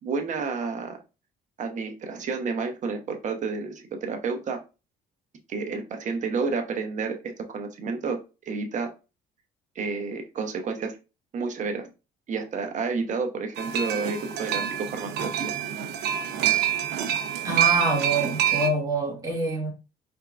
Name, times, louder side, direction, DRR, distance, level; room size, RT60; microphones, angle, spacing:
voice 1, 0.0-1.0 1.6-4.6 5.5-8.9 9.7-11.0 11.3-11.9 12.3-14.6 14.9-15.5, right 4 dB, 45° right, 1.0 m, -30 dB
sound 1, 13.6-18.7, right 10 dB, 85° right, 0.7 m, -26 dB
voice 2, 17.4-19.7, right 2 dB, 20° right, 1.9 m, -26 dB
4.4 x 3.6 x 2.5 m
cardioid pair, 110°, 17 cm